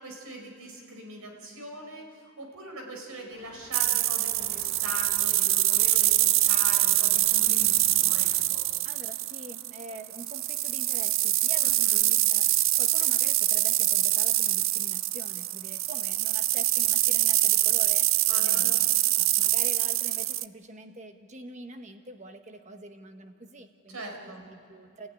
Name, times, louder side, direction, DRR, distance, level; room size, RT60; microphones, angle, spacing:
voice 1, 0.0-8.7 11.6-12.0 18.3-18.7 23.9-24.4, right 1 dB, 85° right, 2 dB, 4.9 m, -41 dB
sound 1, 3.3-8.4, left 3 dB, 45° left, 1.9 m, -51 dB
sound 2, 3.7-20.4, right 16 dB, 65° right, 0.5 m, -24 dB
voice 2, 8.8-12.5 12.8-18.9 19.2-25.1, right 2 dB, 30° right, 6 dB, 1.4 m, -45 dB
30.0 x 15.0 x 9.8 m, 2.6 s
head